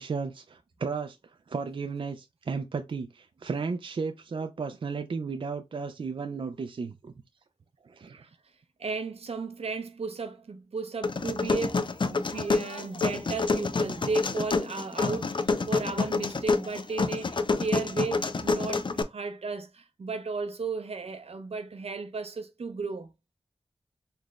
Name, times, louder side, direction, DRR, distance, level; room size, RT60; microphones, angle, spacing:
voice 1, 0.0-7.1 7.8-8.3, right 5 dB, 55° right, 0.4 m, -34 dB
voice 2, 8.8-23.1, right 4 dB, 80° right, 0.7 m, -34 dB
sound 1, 11.0-19.0, left 4 dB, 50° left, 0.5 m, -28 dB
4.0 x 3.2 x 2.3 m
wide cardioid pair, 80°, 10 cm